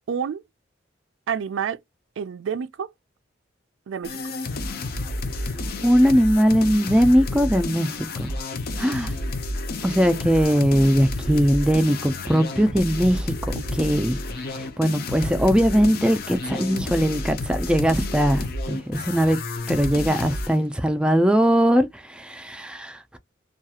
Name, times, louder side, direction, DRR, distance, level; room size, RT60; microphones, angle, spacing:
voice 1, 0.1-0.4 1.3-1.8 2.2-2.9 3.9-4.2 13.5-13.6, right 7 dB, 75° right, 0.3 m, -28 dB
sound 1, 4.0-20.6, left 2 dB, 50° left, 0.5 m, -30 dB
voice 2, 5.8-7.9 8.2-8.3 8.8-9.1 9.8-14.2 14.5-19.4 19.7-23.2, equal, 5° right, 0.3 m, -20 dB
2.3 x 2.3 x 2.8 m
head